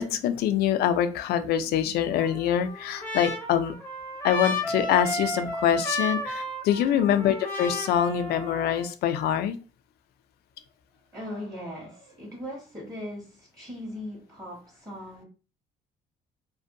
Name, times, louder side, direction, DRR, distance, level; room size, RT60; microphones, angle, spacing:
voice 1, 0.0-3.7 4.2-9.6, left 10 dB, 70° left, 9 dB, 0.4 m, -25 dB
Trumpet, 2.2-8.9, left 1 dB, 10° left, 0.7 m, -33 dB
voice 2, 11.1-15.2, left 1 dB, 20° right, -2 dB, 1.2 m, -39 dB
2.6 x 2.1 x 2.5 m, 0.33 s
cardioid pair, 110°, 17 cm